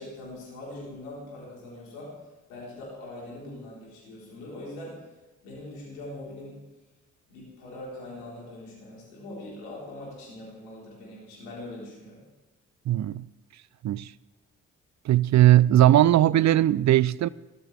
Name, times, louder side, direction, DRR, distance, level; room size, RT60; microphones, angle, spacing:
voice 1, 0.0-2.2 2.5-5.1 5.4-6.6 7.3-12.3, left 1 dB, 85° left, 4.5 m, -42 dB
voice 2, 12.9-13.3 13.8-14.1 15.1-17.3, right 13 dB, 45° right, 0.5 m, -19 dB
18.0 x 13.5 x 3.5 m
hypercardioid pair, 45°, 39 cm